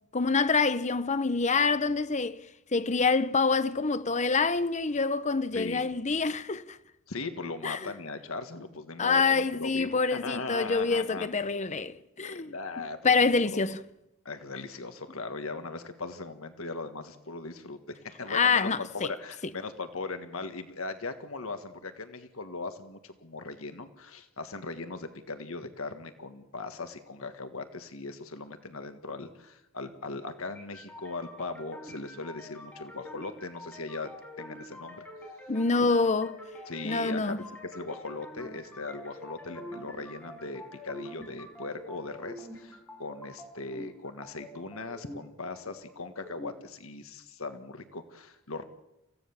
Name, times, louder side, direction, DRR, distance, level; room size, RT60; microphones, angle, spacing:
voice 1, 0.1-2.4 2.7-6.8 7.6-7.9 9.0-13.8 18.3-19.1 35.5-36.3 36.8-37.4, left 4 dB, 35° left, 0.8 m, -26 dB
voice 2, 7.1-11.3 12.2-13.6 14.3-17.8 18.2-34.1 34.4-35.0 35.8-35.9 36.7-37.4 37.7-48.6, left 3 dB, 80° left, 1.7 m, -39 dB
sound 1, 30.5-46.5, left 1 dB, 10° left, 5.7 m, -46 dB
27.0 x 16.0 x 7.2 m
head